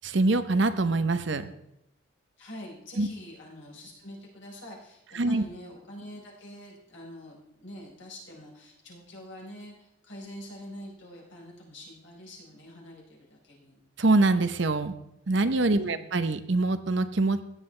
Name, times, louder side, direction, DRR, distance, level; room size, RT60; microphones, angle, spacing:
voice 1, 0.0-1.5 3.0-3.1 5.1-5.4 14.0-14.9 15.3-17.4, right 2 dB, 60° right, 11 dB, 0.7 m, -24 dB
voice 2, 2.4-13.8 15.8-16.1, left 1 dB, 65° left, -2 dB, 4.3 m, -45 dB
16.0 x 9.9 x 3.3 m, 0.83 s
head